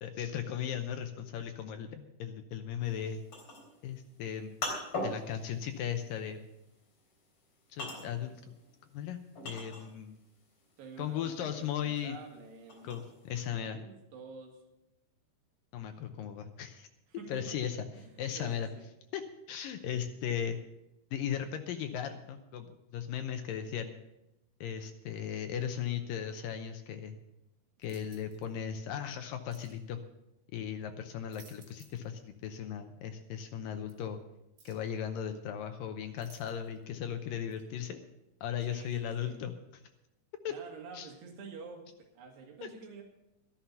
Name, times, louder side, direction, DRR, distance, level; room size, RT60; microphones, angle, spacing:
voice 1, 0.0-3.2 3.8-4.6 5.0-6.5 7.7-8.4 8.9-10.2 11.0-12.2 12.8-13.8 15.7-16.9 17.3-17.8 18.2-18.7 19.1-20.6 21.1-23.9 24.6-27.2 27.8-30.0 30.5-34.2 34.7-38.0 38.4-39.5 40.4-40.5 40.9-41.1 42.6-42.7, left 9 dB, 80° left, 7 dB, 2.1 m, -37 dB
sound 1, 2.9-10.2 10.5-13.5, left 2 dB, 30° left, 3.8 m, -41 dB
voice 2, 10.8-13.0 13.5-14.6 17.1-18.9 38.6-39.4 40.5-43.0, right 5 dB, 80° right, 2 dB, 4.0 m, -49 dB
sound 2, 27.8-28.5 29.5-29.8 31.1-32.1 32.4-32.5 33.9-34.0 34.6-34.9 36.2-36.8 37.5-37.6, right 5 dB, 60° right, 4.2 m, -60 dB
13.5 x 11.5 x 5.6 m, 0.90 s
omnidirectional pair, 4.7 m